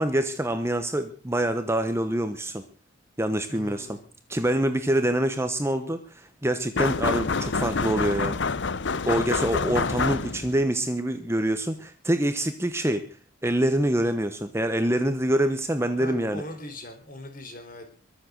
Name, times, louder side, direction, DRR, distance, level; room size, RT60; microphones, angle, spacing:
voice 1, 0.0-2.6 3.2-4.0 4.3-8.4 9.1-13.1 13.4-16.4, right 1 dB, 10° right, 9 dB, 0.9 m, -25 dB
voice 2, 3.5-4.1 16.0-17.9, left 1 dB, 40° left, 5 dB, 4.2 m, -40 dB
sound 1, 6.8-10.6, left 4 dB, 55° left, 0.7 m, -27 dB
22.5 x 7.8 x 6.5 m, 0.42 s
head